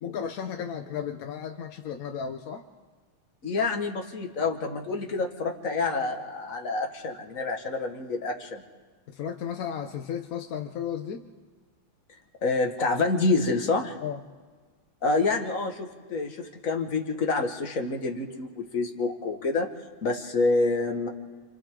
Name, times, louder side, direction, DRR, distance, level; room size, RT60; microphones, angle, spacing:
voice 1, 0.0-2.6 9.1-11.2 14.0-14.2, left 8 dB, 60° left, 6 dB, 1.0 m, -34 dB
voice 2, 3.4-8.6 12.4-14.0 15.0-19.7 20.0-21.1, left 3 dB, 40° left, 2 dB, 1.9 m, -27 dB
29.0 x 26.5 x 3.8 m, 1.4 s
omnidirectional pair, 2.3 m